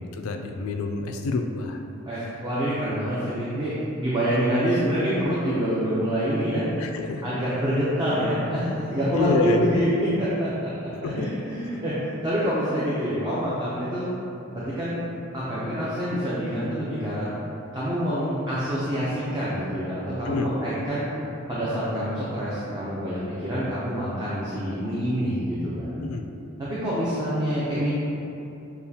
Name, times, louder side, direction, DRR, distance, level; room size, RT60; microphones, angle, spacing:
voice 1, 0.1-1.8 4.3-4.5 6.8-7.3 9.1-9.8 11.0-11.3 20.2-20.5 26.0-26.3, left 4 dB, 90° left, 4 dB, 0.3 m, -27 dB
voice 2, 2.1-6.6 7.2-9.9 10.2-10.7 11.0-14.1 14.5-15.0 15.3-17.3 17.7-21.1 21.5-25.9 26.6-27.9, equal, 20° right, -10 dB, 0.6 m, -26 dB
6.8 x 2.3 x 2.8 m, 2.9 s
head